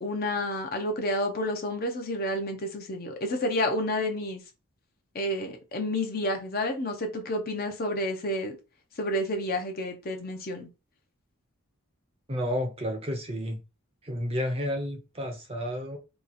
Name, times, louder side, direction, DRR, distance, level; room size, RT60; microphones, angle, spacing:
voice 1, 0.0-4.4 5.1-8.6 9.0-10.7, left 1 dB, 40° left, 0.7 m, -30 dB
voice 2, 12.3-13.6 14.0-16.0, equal, 25° right, 0.6 m, -31 dB
3.0 x 2.4 x 4.0 m
head